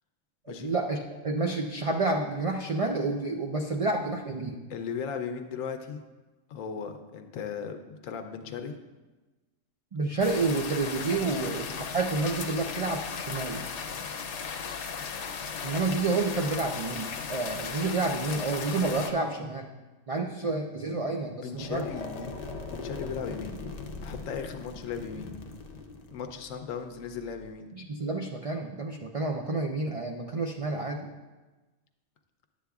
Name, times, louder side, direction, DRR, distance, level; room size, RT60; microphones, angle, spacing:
voice 1, 0.5-4.6 9.9-13.6 15.6-19.7 20.1-21.9 27.7-31.1, right 3 dB, 65° right, 1 dB, 0.3 m, -29 dB
voice 2, 4.7-6.0 6.5-8.8 11.2-11.5 21.3-22.4 22.7-23.6 24.0-25.3 26.1-27.7, left 6 dB, 90° left, 6 dB, 1.0 m, -37 dB
sound 1, 10.2-19.1, left 6 dB, 65° left, 0.9 m, -36 dB
sound 2, 21.5-27.5, left 3 dB, 45° left, 0.6 m, -40 dB
11.0 x 8.2 x 2.3 m, 1.2 s
omnidirectional pair, 1.3 m